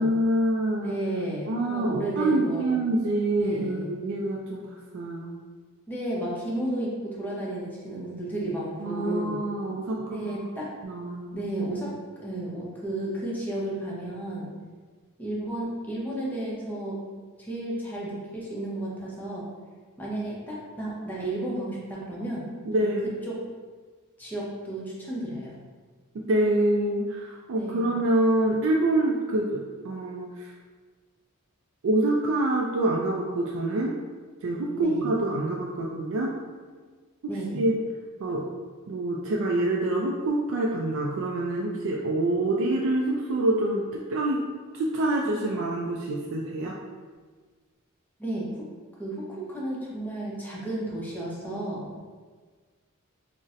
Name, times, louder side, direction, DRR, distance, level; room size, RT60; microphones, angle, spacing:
voice 1, 0.0-0.9 1.5-5.3 8.8-10.4 10.8-11.3 22.6-23.2 26.3-30.5 31.8-33.9 34.4-36.4 37.2-37.8 38.2-38.5 38.9-44.4 44.7-46.8, right 1 dB, 60° right, -2 dB, 0.3 m, -26 dB
voice 2, 0.8-2.7 3.4-3.9 5.9-9.4 10.1-10.7 11.3-11.9 12.2-14.5 15.2-17.0 17.4-19.4 20.0-22.4 22.8-22.9 23.2-23.4 24.2-25.5 27.5-28.0 34.8-35.0 37.3-37.6 48.2-48.5 49.0-51.8, right 1 dB, 10° left, -5 dB, 0.6 m, -32 dB
3.9 x 2.0 x 2.4 m, 1.5 s
head